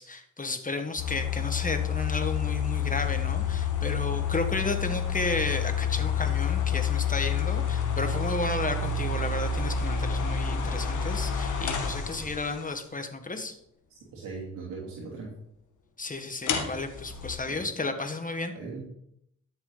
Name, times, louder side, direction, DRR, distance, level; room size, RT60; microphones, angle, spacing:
voice 1, 0.0-13.6 16.0-18.5, left 3 dB, 25° left, 7 dB, 1.6 m, -33 dB
sound 1, 1.0-12.7 16.4-17.4, left 6 dB, 70° left, 1.7 m, -29 dB
voice 2, 13.9-15.3 17.5-17.7 18.5-18.9, right 4 dB, 90° right, -5 dB, 3.0 m, -39 dB
12.5 x 7.3 x 4.0 m, 0.71 s
cardioid pair, 65°, 31 cm